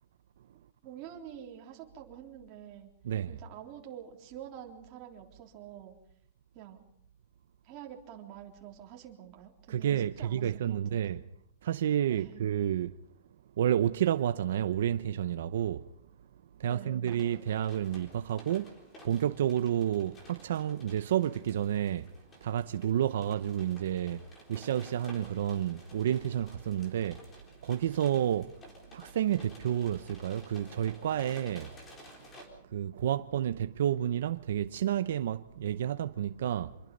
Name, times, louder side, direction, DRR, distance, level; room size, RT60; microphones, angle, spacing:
voice 1, 0.8-2.9 3.3-6.0 6.5-6.8 7.6-11.2 12.1-12.4 16.6-17.0, right 10 dB, 30° right, 3.6 m, -47 dB
voice 2, 9.7-11.2 11.6-13.0 13.6-15.9 16.6-18.7 19.0-22.1 22.4-27.3 27.6-28.6 28.9-31.8 32.7-36.8, right 10 dB, 65° right, 0.8 m, -30 dB
sound 1, 17.0-32.5, left 1 dB, 15° left, 4.1 m, -54 dB
26.5 x 23.0 x 5.4 m
supercardioid pair, 175°, 0 cm